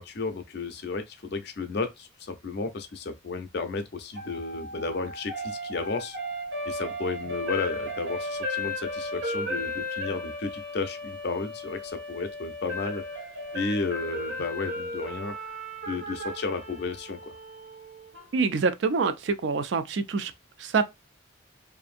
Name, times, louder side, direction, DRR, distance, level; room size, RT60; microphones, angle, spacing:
voice 1, 0.0-6.2 6.7-13.0 13.5-17.3, left 3 dB, 55° left, 0.5 m, -33 dB
sound 1, 4.2-18.3, left 1 dB, 85° right, 1.0 m, -35 dB
voice 2, 18.3-20.3 20.6-20.8, right 4 dB, 65° right, 0.4 m, -25 dB
2.6 x 2.5 x 2.5 m
head